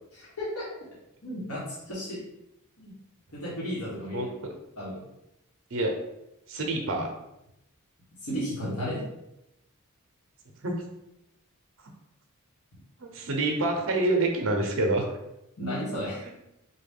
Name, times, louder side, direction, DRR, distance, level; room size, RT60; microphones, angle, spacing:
voice 1, 0.1-0.7 1.2-2.2 2.8-2.9 3.3-4.3 4.8-5.0 8.2-9.0 15.6-16.2, equal, 75° left, -7 dB, 1.2 m, -33 dB
voice 2, 4.0-4.3 5.7-5.9 6.5-7.1 10.6-10.8 13.0-15.2, right 2 dB, 65° right, 2 dB, 0.7 m, -27 dB
4.0 x 2.2 x 3.5 m, 0.86 s
head